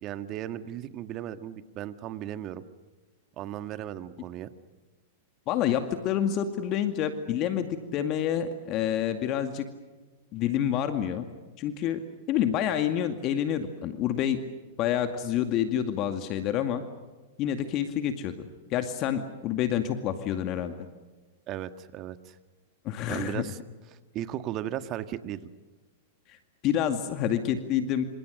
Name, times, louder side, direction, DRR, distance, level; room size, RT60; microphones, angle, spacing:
voice 1, 0.0-2.6 3.4-4.5 21.5-22.4 23.1-23.6 24.1-25.5, right 11 dB, 40° right, 11 dB, 1.7 m, -36 dB
voice 2, 5.5-9.7 10.3-11.3 11.6-12.0 12.3-14.4 14.8-16.8 17.4-18.3 18.7-20.8 22.8-23.4 26.3-26.4 26.6-28.0, left 10 dB, 40° left, 8 dB, 2.2 m, -28 dB
28.5 x 26.5 x 6.5 m, 1.3 s
hypercardioid pair, 105°, 0 cm